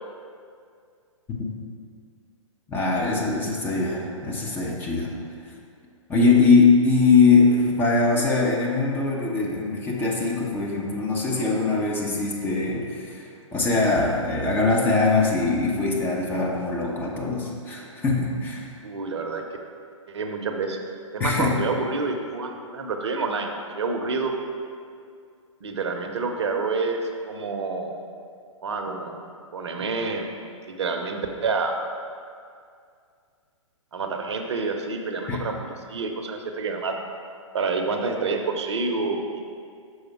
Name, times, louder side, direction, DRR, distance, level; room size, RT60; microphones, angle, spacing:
voice 1, 2.7-5.1 6.1-18.7 21.2-21.6 35.3-35.4, left 4 dB, 10° left, -3 dB, 0.7 m, -22 dB
voice 2, 18.8-19.4 20.1-20.8 21.1-23.5 23.7-24.3 25.6-27.0 27.2-28.0 28.6-29.2 29.5-30.3 30.7-31.8 33.9-36.9 37.5-39.2, right 4 dB, 55° right, 4 dB, 0.8 m, -28 dB
6.3 x 5.0 x 4.7 m, 2.2 s
figure-of-eight pair, 120°, 17 cm